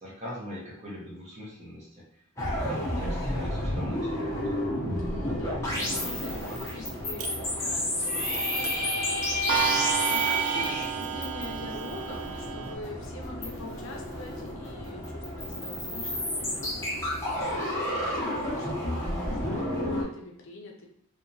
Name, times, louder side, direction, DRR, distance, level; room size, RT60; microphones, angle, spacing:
voice 1, 0.0-2.0 2.6-4.4, left 1 dB, 30° right, -6 dB, 0.6 m, -41 dB
sound 1, 2.4-20.0, left 1 dB, 15° left, 0.5 m, -32 dB
voice 2, 4.9-9.6 10.1-20.9, left 2 dB, 65° left, 1 dB, 0.5 m, -44 dB
Clock, 7.2-7.3 8.3-8.4 8.6-8.9 9.5-12.7, right 9 dB, 90° right, 0.4 m, -31 dB
sound 2, 8.0-10.9, equal, 65° right, 0.8 m, -30 dB
2.8 x 2.2 x 2.6 m, 0.72 s
head